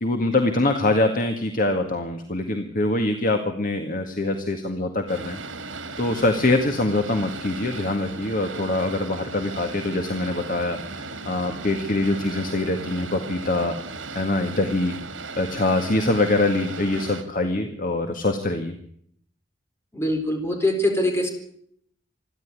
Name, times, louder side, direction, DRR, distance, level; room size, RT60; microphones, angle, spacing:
voice 1, 0.0-5.4 6.0-13.8 14.2-15.0 15.4-18.7, left 2 dB, 45° left, 5 dB, 1.9 m, -24 dB
Boat Water vehicle, 5.1-17.2, right 3 dB, 80° right, 3.0 m, -36 dB
voice 2, 19.9-21.3, left 1 dB, 15° left, 4 dB, 4.3 m, -23 dB
27.0 x 11.5 x 9.8 m, 0.68 s
head